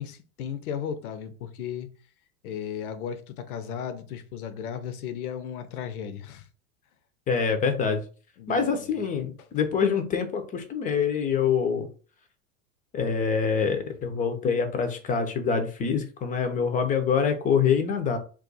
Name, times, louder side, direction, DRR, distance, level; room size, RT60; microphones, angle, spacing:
voice 1, 0.0-1.9 2.4-6.5 8.4-8.9 9.4-9.5, left 8 dB, 80° left, 0.6 m, -35 dB
voice 2, 7.3-8.0 8.5-11.9 12.9-18.2, left 6 dB, 20° left, 0.4 m, -25 dB
2.4 x 2.3 x 3.9 m
hypercardioid pair, 105°, 43 cm